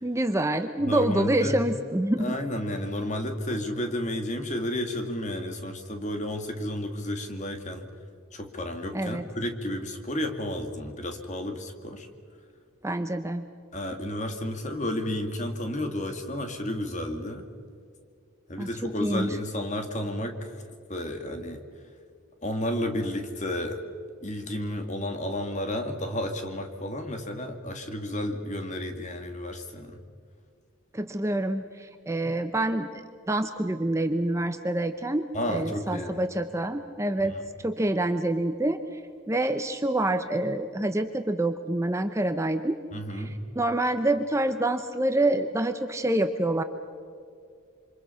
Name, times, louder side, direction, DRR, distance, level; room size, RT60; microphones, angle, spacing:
voice 1, 0.0-2.3 8.9-9.2 12.8-13.4 18.6-19.3 30.9-39.0 39.3-42.8 43.1-46.6, right 1 dB, 15° right, 8 dB, 0.7 m, -27 dB
voice 2, 0.8-1.6 2.2-7.9 8.3-12.1 13.7-17.4 18.5-20.6 20.9-21.6 22.4-23.8 24.2-30.0 35.3-36.2 37.2-37.4 42.9-43.4, left 1 dB, 35° left, 5 dB, 2.2 m, -32 dB
27.5 x 25.5 x 5.7 m, 2.3 s
head